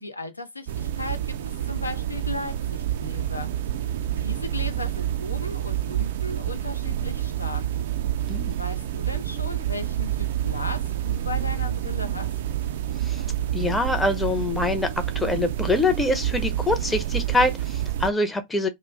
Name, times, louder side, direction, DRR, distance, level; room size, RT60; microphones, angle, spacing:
voice 1, 0.0-3.5 4.2-7.7 8.6-12.3, left 2 dB, 85° left, 0.5 m, -36 dB
sound 1, 0.7-18.1, right 12 dB, 55° right, 0.3 m, -28 dB
voice 2, 13.5-18.7, left 2 dB, 10° left, 0.5 m, -24 dB
2.4 x 2.0 x 3.5 m
figure-of-eight pair, 90°, 0 cm